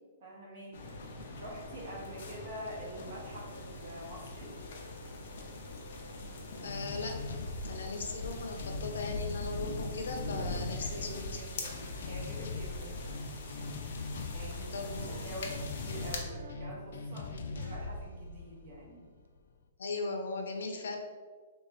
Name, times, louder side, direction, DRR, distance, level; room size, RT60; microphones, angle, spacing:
voice 1, 0.2-0.9 1.4-4.5 10.6-12.9 14.3-14.9 15.2-19.1, equal, 40° right, -5 dB, 1.3 m, -46 dB
sound 1, 0.7-16.2, left 2 dB, 50° left, 0.7 m, -42 dB
voice 2, 6.6-11.3 14.7-15.3 19.8-21.0, left 3 dB, 85° left, 3 dB, 0.7 m, -38 dB
sound 2, 6.7-19.4, left 3 dB, 65° left, 0.3 m, -42 dB
sound 3, 14.9-15.4 16.2-16.8 17.5-18.0 19.2-19.3, right 2 dB, 90° right, 0.5 m, -52 dB
3.4 x 2.9 x 4.0 m, 1.5 s
hypercardioid pair, 175°, 0 cm